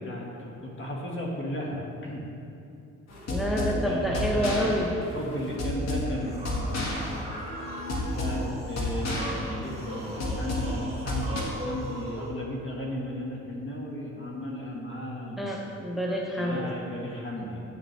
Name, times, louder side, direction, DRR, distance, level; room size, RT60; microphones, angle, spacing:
voice 1, 0.0-2.3 3.8-7.2 7.9-15.5 16.4-17.6, left 1 dB, 40° left, -2 dB, 1.5 m, -35 dB
sound 1, 3.1-11.4, left 1 dB, 60° left, 1.5 m, -31 dB
voice 2, 3.3-4.9 15.4-16.7, equal, ahead, -2 dB, 0.7 m, -28 dB
sound 2, 6.0-12.3, right 1 dB, 20° right, 1.6 m, -40 dB
9.0 x 6.7 x 3.2 m, 2.7 s
cardioid pair, 90°, 30 cm